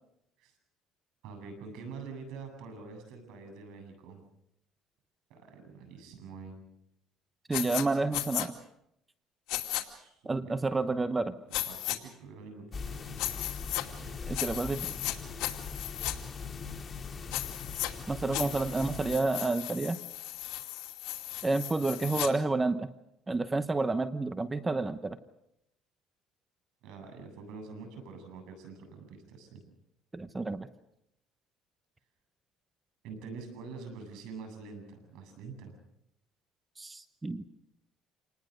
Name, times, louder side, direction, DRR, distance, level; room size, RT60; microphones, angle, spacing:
voice 1, 1.2-4.3 5.3-6.7 9.8-11.1 11.5-13.2 14.0-14.2 26.8-29.6 33.0-35.8, right 4 dB, 80° right, 6 dB, 7.9 m, -46 dB
sound 1, 7.5-7.8 8.1-8.5 9.5-9.8 11.5-12.0 13.2-13.8 14.3-15.1 15.4-16.1 17.3-17.9 18.3-22.3, left 16 dB, 85° left, 2.5 m, -35 dB
voice 2, 7.5-8.6 10.2-11.3 14.3-14.9 18.1-20.0 21.4-22.9 23.3-25.2 30.1-30.7 36.8-37.4, right 3 dB, 15° right, 12 dB, 0.9 m, -30 dB
sound 2, 12.7-19.2, left 5 dB, 35° left, 2.2 m, -41 dB
27.5 x 20.0 x 6.6 m, 0.80 s
cardioid pair, 120°, 0 cm